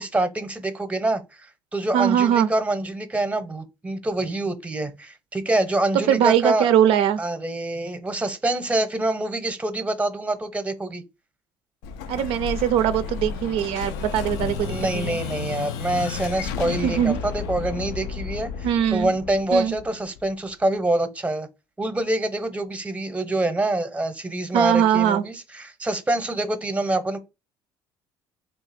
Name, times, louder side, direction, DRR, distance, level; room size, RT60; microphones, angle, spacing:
voice 1, 0.0-6.7 7.2-11.0 14.6-21.5 21.8-27.2, right 2 dB, 15° right, 0.7 m, -26 dB
voice 2, 1.9-2.5 6.1-7.2 12.1-15.2 16.8-17.2 18.6-19.1 19.5-19.7 24.5-25.2, right 10 dB, 75° right, 0.4 m, -21 dB
Explosion, 11.8-20.5, left 6 dB, 85° left, 0.4 m, -32 dB
2.7 x 2.4 x 4.1 m
supercardioid pair, 80°, 10 cm